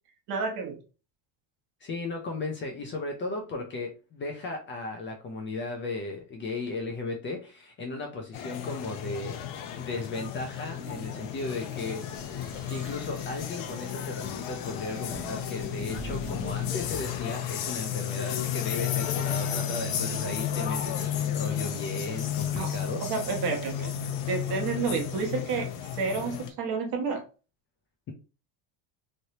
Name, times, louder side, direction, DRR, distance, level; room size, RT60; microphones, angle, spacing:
voice 1, 0.3-0.8 22.6-23.9 24.3-25.7 25.9-27.2, right 4 dB, 55° right, 3 dB, 1.1 m, -30 dB
voice 2, 1.8-9.4 9.8-12.3 12.7-23.0, left 3 dB, 25° left, 2 dB, 0.4 m, -36 dB
sound 1, 8.3-26.5, left 9 dB, 90° left, 0.7 m, -33 dB
sound 2, 10.7-17.2, right 1 dB, 10° right, 0.8 m, -44 dB
3.2 x 2.7 x 2.8 m, 0.33 s
cardioid pair, 145°, 46 cm